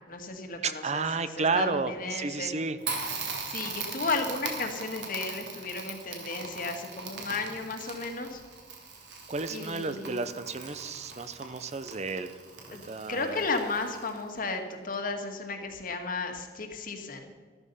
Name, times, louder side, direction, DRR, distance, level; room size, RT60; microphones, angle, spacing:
voice 1, 0.1-2.5 3.5-8.4 9.5-10.2 12.7-17.3, left 3 dB, 50° left, 5 dB, 2.0 m, -34 dB
voice 2, 0.6-2.8 9.3-12.4 12.7-13.4, right 4 dB, 40° right, 11 dB, 0.7 m, -32 dB
Crackle, 2.8-14.4, right 4 dB, 75° right, 3.2 m, -40 dB
13.5 x 13.5 x 5.6 m, 1.5 s
head